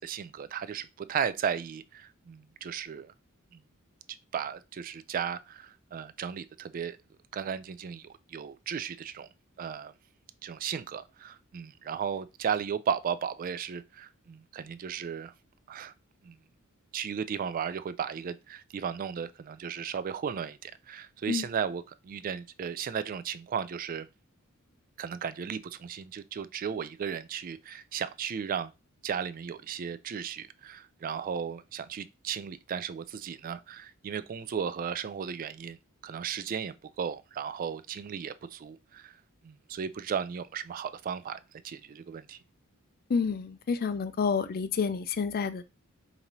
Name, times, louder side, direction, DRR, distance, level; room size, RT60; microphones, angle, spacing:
voice 1, 0.0-3.1 3.5-3.6 4.3-7.0 7.3-9.3 9.6-9.9 10.4-15.3 15.7-15.9 16.2-16.4 16.9-24.1 25.0-28.7 29.0-35.8 36.0-39.1 39.4-41.4 41.6-42.4, right 7 dB, 40° right, 0.3 m, -35 dB
voice 2, 43.1-45.6, left 5 dB, 45° left, 0.4 m, -29 dB
5.1 x 2.7 x 2.9 m
head